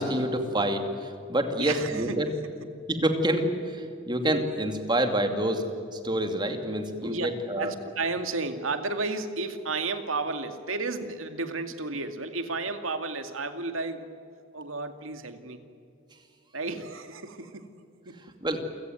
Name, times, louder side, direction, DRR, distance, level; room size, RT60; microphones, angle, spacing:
voice 1, 0.0-2.3 2.9-7.7 18.4-18.6, right 1 dB, 20° right, 6 dB, 2.5 m, -27 dB
voice 2, 1.6-2.2 7.0-7.3 7.6-14.1 14.5-15.6 16.5-17.7 18.1-18.2, right 3 dB, 85° right, 7 dB, 2.3 m, -32 dB
29.0 x 17.0 x 9.5 m, 2.5 s
head